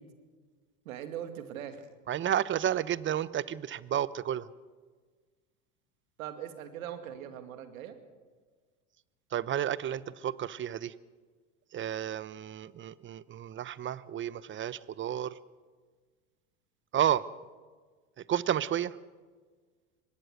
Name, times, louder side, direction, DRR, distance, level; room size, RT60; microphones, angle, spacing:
voice 1, 0.9-1.8 6.2-8.0, right 10 dB, 80° right, 8 dB, 2.4 m, -40 dB
voice 2, 2.1-4.5 9.3-10.9 11.7-15.4 16.9-17.3 18.3-19.0, right 10 dB, 30° right, 19 dB, 0.8 m, -31 dB
24.5 x 19.5 x 6.6 m, 1.5 s
hypercardioid pair, 85°, 41 cm